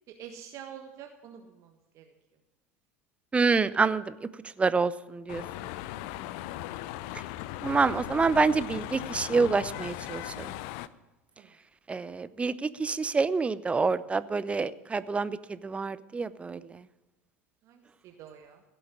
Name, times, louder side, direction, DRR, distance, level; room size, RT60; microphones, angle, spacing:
voice 1, 0.1-2.1 5.9-6.3 11.4-11.5 17.6-18.6, right 8 dB, 45° right, 5 dB, 1.5 m, -47 dB
voice 2, 3.3-4.1 4.6-5.4 7.6-10.5 11.9-16.8, right 4 dB, 15° right, 16 dB, 0.7 m, -27 dB
sound 1, 5.3-10.9, left 15 dB, 55° left, 0.6 m, -38 dB
16.5 x 8.0 x 9.6 m, 1.1 s
figure-of-eight pair, 75°, 8 cm